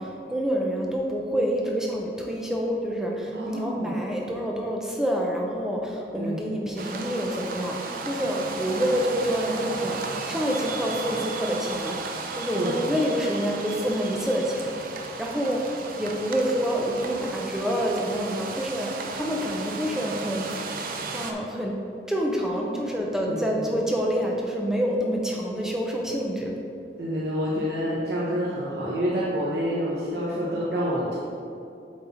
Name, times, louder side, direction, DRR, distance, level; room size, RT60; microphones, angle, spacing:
voice 1, 0.0-12.0 12.3-15.6 16.0-20.5 20.8-21.8 22.1-26.5, equal, 5° right, -1 dB, 0.6 m, -27 dB
voice 2, 3.3-4.0 6.1-6.8 12.5-13.0 23.2-23.7 27.0-31.2, equal, 70° right, -6 dB, 0.9 m, -28 dB
sound 1, 6.8-21.3, right 3 dB, 50° right, 0.5 m, -34 dB
7.6 x 4.2 x 4.3 m, 2.5 s
head